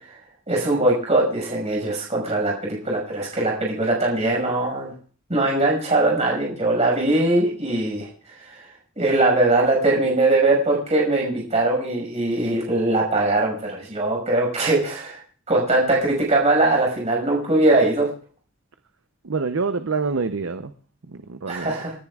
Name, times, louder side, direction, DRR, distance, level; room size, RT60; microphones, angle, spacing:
voice 1, 0.5-4.9 5.3-8.1 8.5-8.7 9.0-15.2 15.5-18.1 21.5-21.9, right 2 dB, 35° right, 5.8 m, -21 dB
voice 2, 19.2-20.7 21.1-21.7, right 4 dB, 85° right, 0.7 m, -26 dB
29.5 x 10.5 x 2.4 m
head